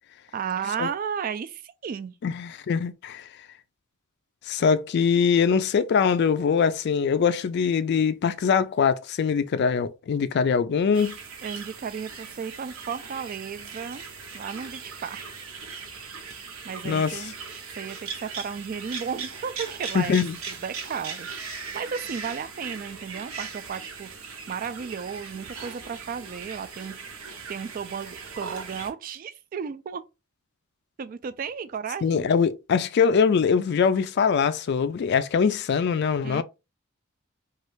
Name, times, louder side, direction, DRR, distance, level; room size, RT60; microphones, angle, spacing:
voice 1, 0.3-2.2 11.4-14.0 14.3-15.5 16.6-17.3 17.7-20.2 20.5-24.1 24.5-27.0 27.5-30.0 31.0-32.3 36.2-36.4, right 6 dB, 40° right, 0.3 m, -34 dB
voice 2, 2.2-3.3 4.5-11.2 16.8-17.2 19.9-20.4 32.0-36.4, left 6 dB, 50° left, 0.3 m, -23 dB
sound 1, 10.9-28.9, right 5 dB, 80° right, 0.8 m, -39 dB
3.1 x 2.4 x 3.0 m
head